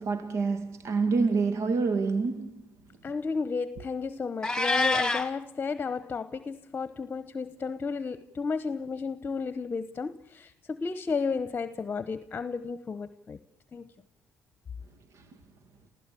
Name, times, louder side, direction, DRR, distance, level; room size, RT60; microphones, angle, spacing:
voice 1, 0.0-2.6, right 4 dB, 65° right, 2.0 m, -27 dB
voice 2, 3.0-13.4 13.7-13.9, left 5 dB, 35° left, 1.0 m, -33 dB
Meow, 4.4-5.3, left 2 dB, 10° left, 2.3 m, -26 dB
28.5 x 16.0 x 8.5 m
cardioid pair, 105°, 5 cm